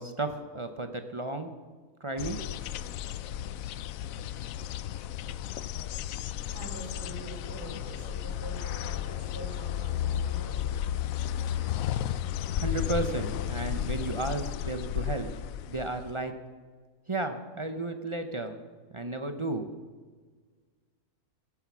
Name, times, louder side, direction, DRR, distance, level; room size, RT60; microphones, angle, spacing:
voice 1, 0.0-1.5 2.0-2.4 12.6-15.3 15.7-16.3 17.1-18.6 18.9-19.7, right 2 dB, 30° right, 7 dB, 0.6 m, -33 dB
sound 1, 2.2-16.3, left 11 dB, 70° left, 0.9 m, -33 dB
sound 2, 6.1-14.0, left 4 dB, 20° left, 0.5 m, -54 dB
voice 2, 6.5-10.9, right 1 dB, 75° right, -1 dB, 4.5 m, -44 dB
16.0 x 9.6 x 6.1 m, 1.5 s
omnidirectional pair, 1.6 m